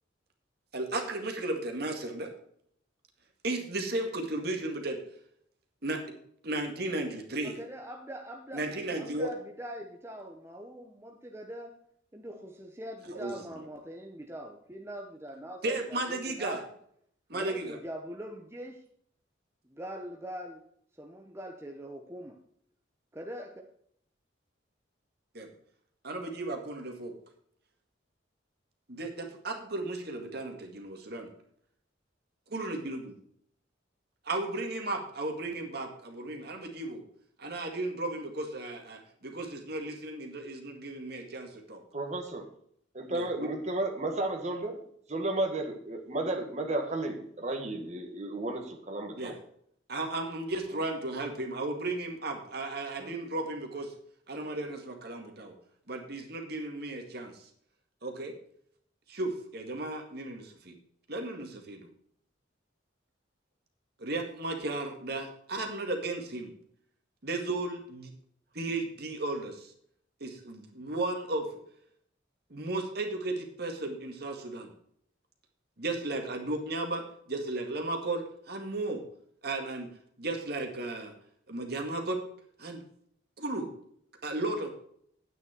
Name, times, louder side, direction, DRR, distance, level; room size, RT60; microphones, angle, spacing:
voice 1, 0.7-2.3 3.4-5.0 5.8-6.2 6.4-7.6 8.5-9.3 13.1-13.3 15.6-16.6 17.3-17.8 25.3-25.5 26.0-27.1 28.9-31.3 32.5-33.0 34.3-37.0 37.4-41.8 43.1-43.5 49.2-49.3 49.9-53.9 54.3-55.5 55.9-57.4 58.0-58.3 59.1-60.7 61.1-61.9 64.0-66.5 67.2-68.1 68.5-69.7 70.2-71.5 72.5-74.7 75.8-79.0 79.4-79.9 80.2-81.1 81.5-82.2 82.6-82.8 83.4-83.7 84.2-84.7, right 2 dB, 55° right, 3 dB, 2.0 m, -35 dB
voice 2, 7.4-8.6 9.0-11.7 12.1-16.6 17.3-18.8 19.6-20.6 21.0-22.4 23.1-23.5, equal, 15° right, 2 dB, 0.9 m, -42 dB
voice 3, 41.9-42.5 42.9-44.8 45.1-49.4 50.7-50.8 53.0-53.2, right 2 dB, 40° right, 3 dB, 1.8 m, -33 dB
9.6 x 9.2 x 4.5 m, 0.66 s
head